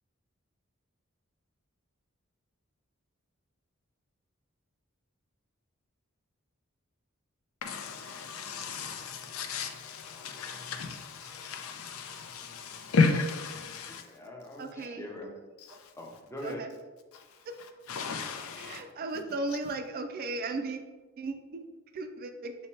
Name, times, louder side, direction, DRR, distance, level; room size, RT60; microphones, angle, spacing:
voice 1, 7.6-14.0 15.7-15.9 17.1-17.4 17.9-18.8, left 4 dB, 85° left, 6 dB, 0.5 m, -33 dB
voice 2, 13.9-15.4 16.0-16.6, left 1 dB, 15° left, 1 dB, 0.6 m, -42 dB
voice 3, 14.6-15.1 15.7-15.8 16.4-16.7 17.4-17.5 18.6-20.8 21.2-21.7 21.9-22.6, right 3 dB, 45° right, 7 dB, 0.3 m, -36 dB
4.2 x 2.2 x 4.3 m, 1.2 s
head